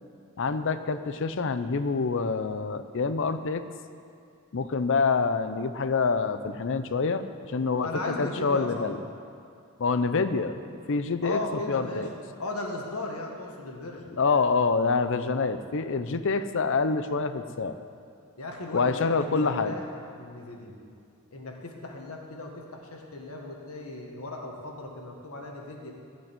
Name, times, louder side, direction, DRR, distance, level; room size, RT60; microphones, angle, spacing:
voice 1, 0.4-3.6 4.5-7.9 8.2-9.0 9.8-11.4 11.7-12.1 14.1-17.8 18.7-19.7, left 4 dB, 60° left, 11 dB, 0.6 m, -26 dB
voice 2, 7.8-8.8 11.2-12.0 12.4-14.0 18.4-19.9 20.1-20.7 21.3-25.9, left 2 dB, 80° left, 1 dB, 1.7 m, -36 dB
14.5 x 5.4 x 8.9 m, 2.4 s
head